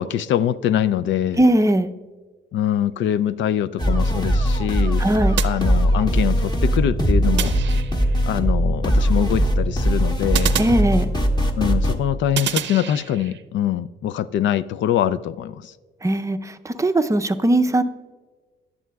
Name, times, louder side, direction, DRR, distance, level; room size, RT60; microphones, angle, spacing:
voice 1, 0.0-1.4 2.5-5.0 5.4-7.5 8.3-10.5 11.6-15.7, left 10 dB, 70° left, 0.4 m, -23 dB
voice 2, 1.4-1.9 5.0-5.3 10.6-11.1 16.0-17.8, right 1 dB, 15° right, 0.6 m, -19 dB
sound 1, 3.8-11.9, equal, 20° left, 1.3 m, -20 dB
sound 2, 5.4-6.3 7.4-8.3 10.3-11.5 12.4-13.4, right 10 dB, 65° right, 0.6 m, -29 dB
17.0 x 11.0 x 2.3 m
cardioid pair, 90°, 20 cm